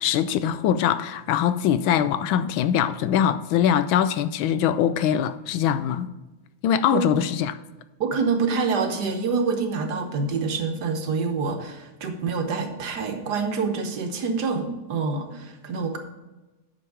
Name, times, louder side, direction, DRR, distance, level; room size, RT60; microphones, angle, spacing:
voice 1, 0.0-6.1 6.6-7.6, left 9 dB, 75° left, 1.3 m, -22 dB
voice 2, 6.9-7.3 8.0-16.0, right 4 dB, 55° right, 1.4 m, -26 dB
8.9 x 6.3 x 4.8 m
omnidirectional pair, 2.4 m